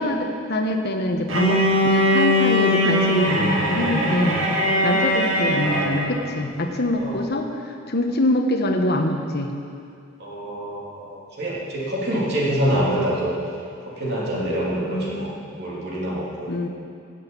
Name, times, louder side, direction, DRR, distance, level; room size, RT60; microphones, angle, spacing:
voice 1, 0.0-4.4 4.8-9.5 14.7-15.4 16.5-16.7, left 1 dB, 55° left, 3 dB, 1.2 m, -24 dB
Bowed string instrument, 1.3-6.2, equal, 75° right, 2.0 m, -20 dB
voice 2, 10.2-13.3 13.8-16.5, right 1 dB, 60° right, -6 dB, 2.8 m, -26 dB
16.5 x 8.2 x 5.4 m, 2.4 s
head